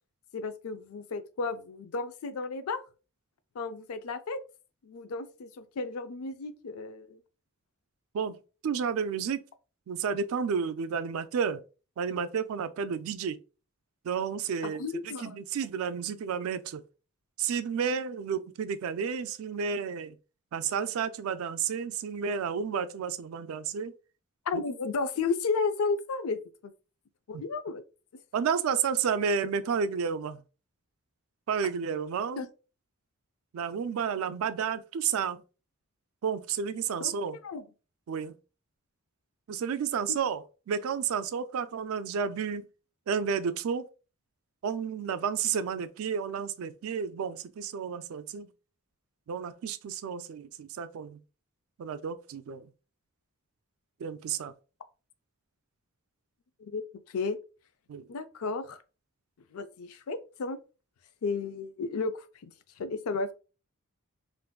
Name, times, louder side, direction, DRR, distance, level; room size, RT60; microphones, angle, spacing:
voice 1, 0.3-2.8 3.6-4.4 4.8-7.2 14.6-15.4 24.5-26.7 27.3-27.8 32.4-32.5 37.0-37.1 37.4-37.6 40.1-40.2 56.6-56.8 57.1-57.4 58.1-58.8 59.5-60.6 61.2-62.5 62.8-63.3, left 4 dB, 85° left, 0.4 m, -33 dB
voice 2, 8.6-9.4 9.9-11.6 12.0-13.4 14.0-16.8 17.4-20.2 20.5-23.9 24.5-24.6 27.3-27.4 28.3-30.4 31.5-32.5 33.5-35.4 36.2-37.4 38.1-38.3 39.5-42.7 43.1-43.9 44.6-48.5 49.3-51.2 51.8-52.7 54.0-54.5 57.9-58.1, right 6 dB, 75° right, 0.3 m, -31 dB
3.6 x 2.5 x 2.2 m
head